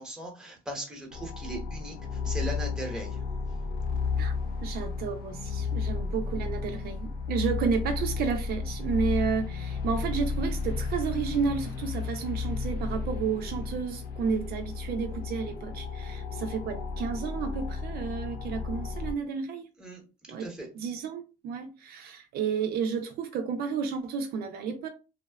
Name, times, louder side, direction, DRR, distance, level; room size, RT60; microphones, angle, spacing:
voice 1, 0.0-1.9 2.2-3.1 19.8-20.0 20.4-20.7, right 1 dB, 5° right, 0.9 m, -38 dB
sound 1, 1.1-19.1, left 4 dB, 65° left, 0.4 m, -33 dB
voice 2, 4.6-19.7 20.3-20.5 20.7-24.9, right 5 dB, 65° right, 0.4 m, -31 dB
2.7 x 2.1 x 2.2 m
cardioid pair, 110°, 17 cm